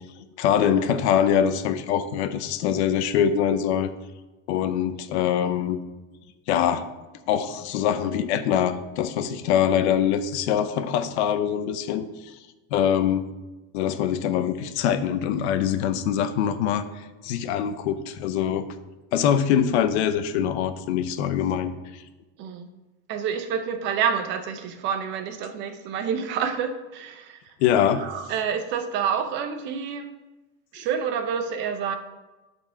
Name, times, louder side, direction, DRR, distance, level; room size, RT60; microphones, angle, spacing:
voice 1, 0.4-3.9 4.5-5.8 6.5-6.9 7.3-12.4 12.7-13.3 13.7-18.7 19.1-22.0 27.6-28.0, left 9 dB, 75° left, 11 dB, 0.8 m, -23 dB
voice 2, 23.1-27.4 28.0-30.1 30.7-32.0, right 7 dB, 35° right, 8 dB, 0.6 m, -28 dB
8.7 x 4.4 x 5.7 m, 1.1 s
cardioid pair, 175°, 33 cm